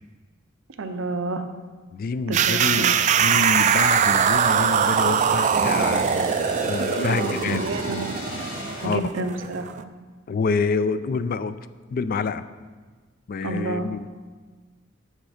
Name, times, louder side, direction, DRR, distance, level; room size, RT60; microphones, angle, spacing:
voice 1, 0.8-1.5 2.3-2.9 6.8-8.2 8.8-9.7 13.4-13.9, right 3 dB, 75° right, 7 dB, 0.6 m, -29 dB
voice 2, 1.9-2.9 3.2-6.3 6.6-7.6 8.8-9.0 10.3-11.6 11.9-12.4 13.3-14.0, left 4 dB, 50° left, 14 dB, 0.3 m, -27 dB
sound 1, 2.3-9.8, right 7 dB, 40° right, 0.3 m, -22 dB
sound 2, 2.7-8.9, left 1 dB, 90° left, 2.0 m, -34 dB
7.9 x 6.5 x 4.9 m, 1.4 s
head